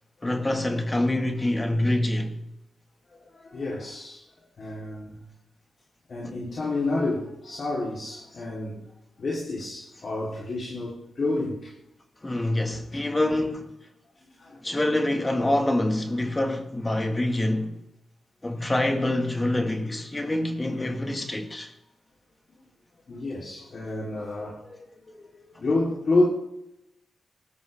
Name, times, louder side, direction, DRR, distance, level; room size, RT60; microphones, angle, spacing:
voice 1, 0.2-2.4 12.2-13.7 14.6-17.8 18.4-21.7, left 1 dB, 20° left, 1.9 m, -26 dB
voice 2, 3.1-4.2 4.6-5.2 6.1-8.9 9.2-11.7 12.9-13.0 14.4-14.8 23.1-26.3, left 2 dB, 50° left, 3.5 m, -29 dB
19.5 x 12.5 x 3.6 m
cardioid pair, 100°, 0 cm